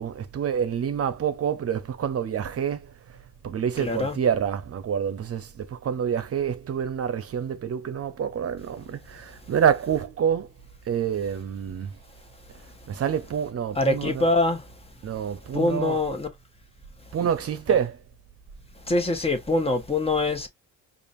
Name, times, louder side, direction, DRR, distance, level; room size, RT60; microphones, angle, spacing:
voice 1, 0.0-2.9 3.4-10.5 10.9-12.0 12.9-14.3 15.0-16.0 17.1-18.0, right 8 dB, 50° right, 0.8 m, -27 dB
voice 2, 3.8-4.1 13.8-14.6 15.5-16.3 18.9-20.5, left 2 dB, 20° left, 1.3 m, -24 dB
5.0 x 2.6 x 2.6 m
cardioid pair, 90°, 30 cm